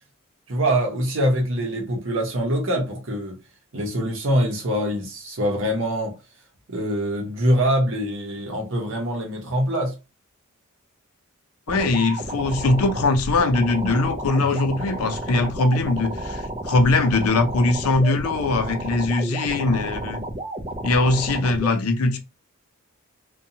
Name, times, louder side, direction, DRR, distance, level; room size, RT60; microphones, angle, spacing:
voice 1, 0.5-3.4 3.7-6.1 6.7-10.0, equal, 60° right, 0.7 m, -24 dB
voice 2, 11.7-20.2 20.8-22.2, left 3 dB, 85° left, 0.5 m, -21 dB
sound 1, 11.7-21.7, right 1 dB, 25° right, 0.4 m, -32 dB
2.6 x 2.2 x 2.7 m
head